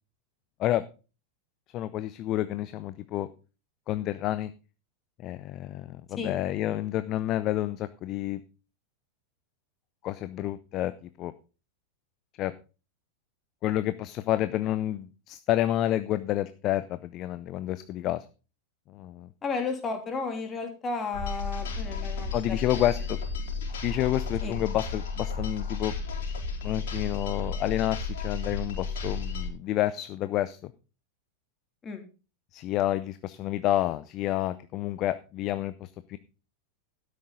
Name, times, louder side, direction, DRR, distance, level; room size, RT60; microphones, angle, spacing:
voice 1, 1.7-3.3 3.9-4.5 5.2-8.4 10.0-10.9 11.2-11.3 12.4-12.5 13.6-18.3 18.9-19.3 22.3-23.2 23.8-25.9 26.6-30.7 32.5-36.2, left 13 dB, 35° left, 14 dB, 0.6 m, -29 dB
voice 2, 19.4-22.4 24.4-24.6 31.8-32.0, left 4 dB, 20° left, 4 dB, 3.1 m, -33 dB
sound 1, 21.1-29.5, left 4 dB, 55° left, 4.3 m, -33 dB
12.5 x 10.0 x 3.9 m, 0.33 s
figure-of-eight pair, 90°, 0 cm